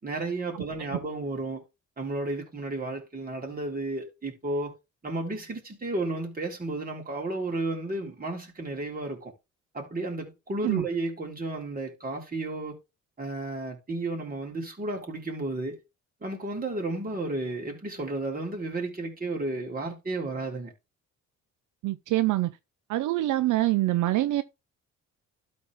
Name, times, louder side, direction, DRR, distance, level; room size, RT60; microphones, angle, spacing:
voice 1, 0.0-1.6 2.0-4.7 5.0-9.3 9.7-12.8 13.2-15.8 16.2-20.7, right 2 dB, 30° right, 3.8 m, -33 dB
voice 2, 21.8-22.5 22.9-24.4, right 16 dB, 80° right, 0.6 m, -25 dB
12.5 x 4.3 x 3.5 m
cardioid pair, 90°, 30 cm